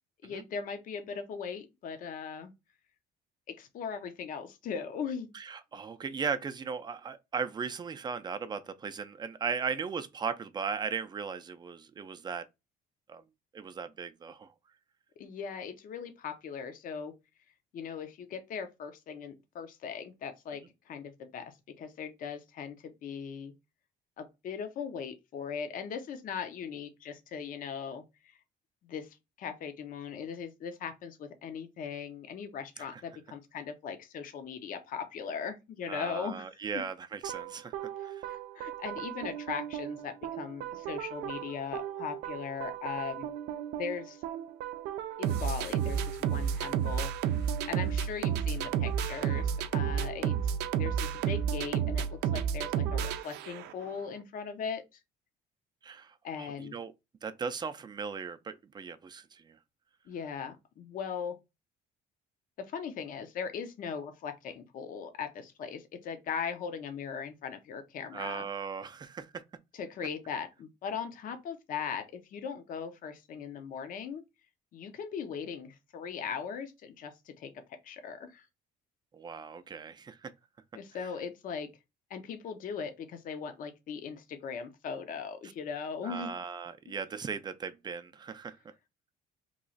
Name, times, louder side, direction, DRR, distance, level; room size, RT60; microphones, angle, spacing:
voice 1, 0.2-2.5 3.5-5.3 15.2-17.1 17.7-23.5 24.2-28.4 28.8-36.5 36.7-36.8 38.0-43.3 43.7-44.2 45.2-50.3 50.8-55.0 56.2-56.7 60.1-61.4 62.6-68.5 69.7-74.2 74.7-78.5 80.7-81.7 82.1-86.3, left 6 dB, 55° left, 0.6 m, -39 dB
voice 2, 5.3-12.4 13.1-13.2 13.5-14.5 35.9-38.3 55.8-56.9 57.2-59.6 68.1-69.4 79.1-80.3 86.0-88.6, right 6 dB, 25° right, 0.4 m, -37 dB
sound 1, 37.2-53.9, right 8 dB, 80° right, 0.4 m, -32 dB
3.1 x 2.3 x 3.8 m
cardioid pair, 110°, 17 cm